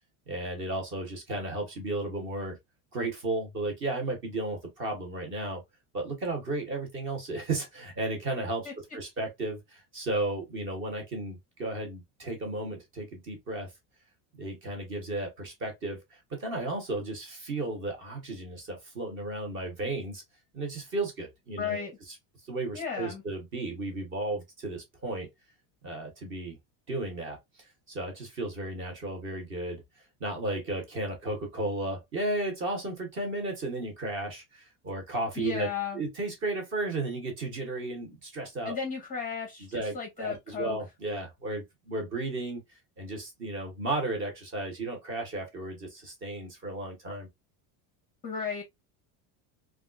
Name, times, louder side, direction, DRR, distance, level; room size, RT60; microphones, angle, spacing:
voice 1, 0.3-2.6 2.9-5.6 5.9-8.7 8.9-13.7 14.3-20.2 20.5-21.8 22.5-25.3 25.8-26.6 26.9-27.4 27.9-29.8 30.2-35.7 35.9-38.8 39.7-42.6 43.0-47.3, right 2 dB, 30° right, 1.0 m, -34 dB
voice 2, 21.6-22.0 22.7-23.2 35.4-36.0 38.6-40.8 48.2-48.6, left 6 dB, 20° left, 0.6 m, -34 dB
3.4 x 2.4 x 2.4 m
cardioid pair, 170°, 43 cm